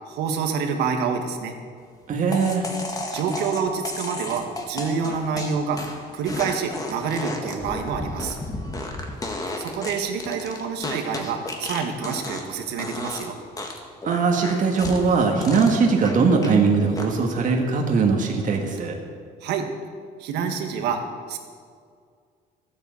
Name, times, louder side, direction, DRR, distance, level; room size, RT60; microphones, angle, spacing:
voice 1, 0.1-1.5 3.1-5.9 6.1-8.4 9.6-13.4 19.4-19.7 20.2-21.0 21.3-21.4, right 6 dB, 85° right, 5 dB, 1.7 m, -27 dB
voice 2, 2.1-2.7 14.0-19.0, right 4 dB, 50° right, 1 dB, 1.8 m, -20 dB
sound 1, 2.3-12.5 12.8-13.3 13.6-16.6 17.0-17.4, left 2 dB, 20° left, 1.9 m, -33 dB
13.0 x 9.3 x 7.8 m, 2.1 s
cardioid pair, 110°, 17 cm